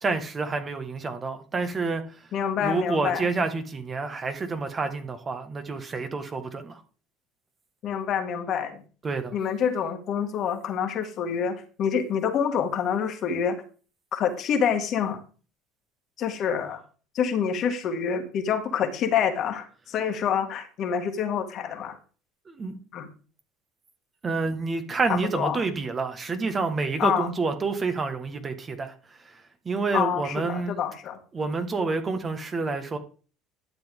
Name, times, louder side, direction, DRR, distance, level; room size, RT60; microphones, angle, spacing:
voice 1, 0.0-2.0 2.6-6.8 9.0-9.3 22.5-22.8 24.2-28.9 29.2-29.3 29.6-30.7 31.3-33.0, right 4 dB, 30° right, 1.6 m, -28 dB
voice 2, 2.3-3.3 7.8-8.8 9.3-13.6 14.1-15.2 16.2-16.8 17.1-22.0 22.9-23.1 25.1-25.6 27.0-27.3 29.9-31.2, left 7 dB, 55° left, 1.9 m, -27 dB
11.5 x 7.1 x 3.6 m
supercardioid pair, 85°, 0 cm